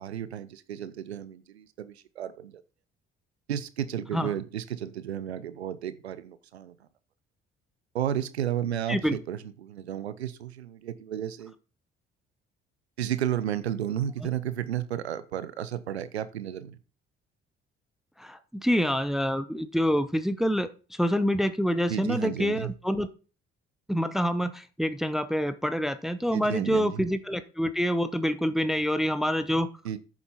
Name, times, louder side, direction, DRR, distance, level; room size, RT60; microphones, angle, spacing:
voice 1, 0.0-2.6 3.5-6.7 7.9-11.5 13.0-16.8 21.9-22.7 26.3-27.1 29.8-30.0, right 10 dB, 85° right, 15 dB, 0.6 m, -33 dB
voice 2, 18.2-23.1 23.9-29.7, equal, ahead, 12 dB, 0.9 m, -27 dB
9.6 x 7.1 x 4.2 m, 0.36 s
figure-of-eight pair, 45°, 31 cm